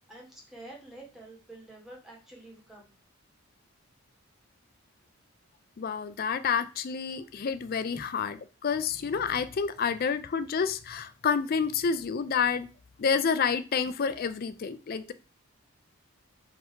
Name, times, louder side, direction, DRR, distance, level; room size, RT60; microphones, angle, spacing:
voice 1, 0.1-2.9 7.9-8.0, right 1 dB, ahead, 1.2 m, -48 dB
voice 2, 5.8-8.4 8.6-12.7 13.0-15.1, left 6 dB, 45° left, 0.3 m, -29 dB
3.7 x 2.7 x 4.5 m
head